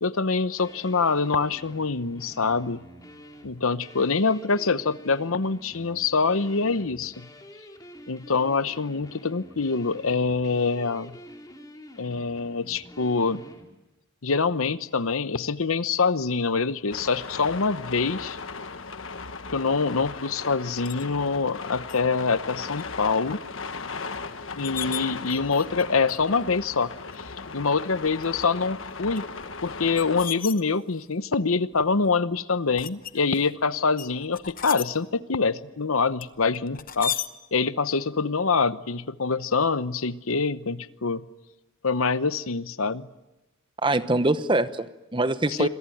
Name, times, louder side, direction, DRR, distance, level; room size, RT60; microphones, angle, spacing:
voice 1, 0.0-2.8 3.4-7.3 8.1-11.2 12.0-13.4 14.2-18.4 19.5-23.4 24.6-27.2 27.5-29.2 29.6-37.1 37.5-41.2 41.8-43.1 45.5-45.7, left 4 dB, 85° left, 14 dB, 1.0 m, -25 dB
sound 1, 0.6-13.6, equal, 15° left, 3.5 m, -47 dB
sound 2, 16.9-30.3, left 4 dB, 70° left, 1.4 m, -37 dB
sound 3, 20.9-21.1 21.9-22.0 22.4-22.8 23.3-23.4 24.1-24.2 24.5-25.8 26.1-26.4 27.1-27.2 28.1-28.4 29.2-31.1 31.7-32.1 32.8-33.5 34.0-34.9 36.2-37.3, left 10 dB, 40° left, 1.0 m, -35 dB
voice 2, 43.8-45.7, right 2 dB, 25° right, 12 dB, 1.0 m, -24 dB
27.5 x 23.0 x 9.3 m, 0.99 s
head